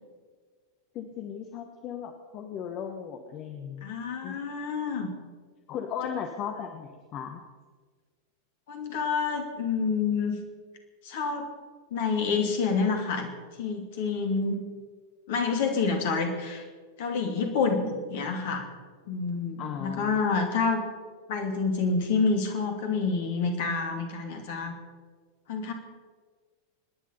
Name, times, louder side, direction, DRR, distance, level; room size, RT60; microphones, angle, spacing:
voice 1, 0.9-3.9 4.2-4.4 5.7-7.4 19.6-20.6, left 8 dB, 35° left, 5 dB, 1.3 m, -37 dB
voice 2, 3.8-5.1 8.7-10.4 11.0-11.5 11.9-13.3 13.6-14.6 15.3-16.6 17.0-18.7 19.1-20.8 21.3-24.7 25.5-25.7, left 4 dB, 55° left, 4 dB, 2.8 m, -28 dB
25.5 x 10.0 x 5.6 m, 1.5 s
figure-of-eight pair, 90°, 0 cm